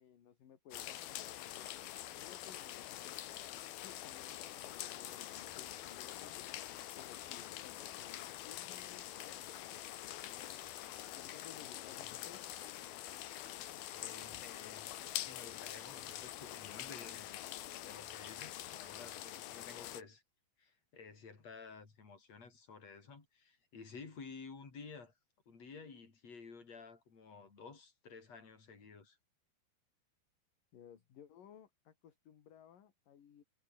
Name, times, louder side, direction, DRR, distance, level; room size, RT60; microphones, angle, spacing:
voice 1, 0.0-1.9 2.1-10.7 11.1-12.5 30.7-33.4, left 9 dB, 50° left, 3.6 m, -59 dB
sound 1, 0.7-20.0, left 13 dB, 70° left, 2.6 m, -45 dB
voice 2, 13.9-17.4 17.8-20.2 20.6-25.1 25.5-29.2, left 5 dB, 35° left, 5.6 m, -53 dB
omnidirectional pair, 5.9 m